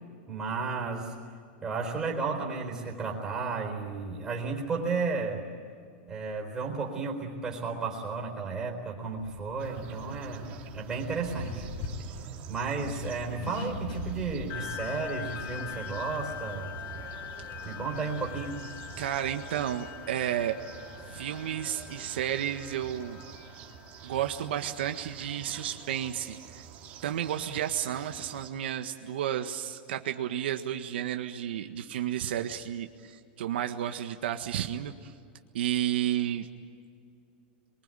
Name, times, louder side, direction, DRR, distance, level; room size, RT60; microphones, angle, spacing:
voice 1, 0.3-1.1 1.6-5.5 6.1-11.7 12.5-16.7 17.6-18.6, right 4 dB, 10° right, 0 dB, 4.1 m, -33 dB
Accelerating revving vroom, 9.2-16.5, left 4 dB, 55° left, 3.6 m, -42 dB
sound 1, 9.6-28.5, right 7 dB, 30° right, 2.3 m, -47 dB
sound 2, 14.5-25.4, left 10 dB, 30° left, 1.0 m, -43 dB
voice 2, 19.0-20.5 21.1-23.2 24.0-26.6 27.0-35.1 35.5-36.5, right 11 dB, 75° right, 6 dB, 1.6 m, -32 dB
28.0 x 23.5 x 9.1 m, 2.3 s
supercardioid pair, 175°, 6 cm